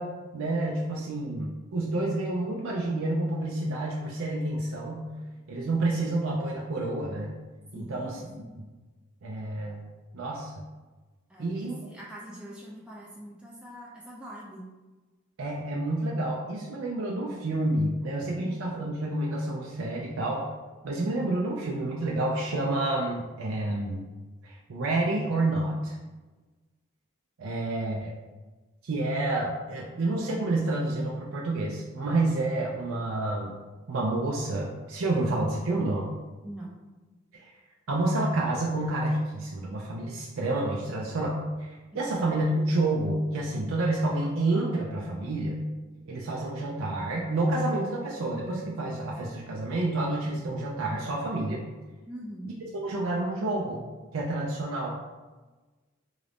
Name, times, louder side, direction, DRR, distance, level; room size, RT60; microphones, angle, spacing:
voice 1, 0.0-5.1 5.5-7.3 7.7-8.2 9.2-9.8 10.1-10.5 11.4-11.8 15.4-20.5 20.8-24.0 24.4-26.0 27.4-28.1 28.8-33.5 33.9-36.1 37.3-37.5 37.9-41.7 41.9-45.6 46.1-51.6 52.8-53.8 54.1-55.0, right 2 dB, 75° right, -3 dB, 0.5 m, -29 dB
voice 2, 5.5-6.0 7.7-8.6 11.3-14.6 18.3-18.6 27.5-27.6 36.4-36.8 41.9-42.1 52.1-52.5, equal, 5° right, -6 dB, 0.4 m, -44 dB
3.8 x 2.5 x 3.4 m, 1.2 s
head